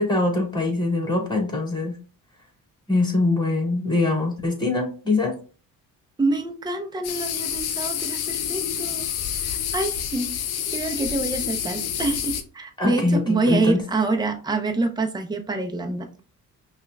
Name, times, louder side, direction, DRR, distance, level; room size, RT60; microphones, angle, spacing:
voice 1, 0.0-2.0 2.9-5.4 12.8-13.8, left 2 dB, 10° left, 0 dB, 2.1 m, -23 dB
voice 2, 6.2-9.1 9.4-10.3 10.7-16.2, right 3 dB, 10° right, 4 dB, 0.7 m, -26 dB
sound 1, 7.0-12.4, left 9 dB, 85° left, 0.6 m, -28 dB
5.7 x 2.4 x 2.3 m, 0.36 s
supercardioid pair, 65°, 38 cm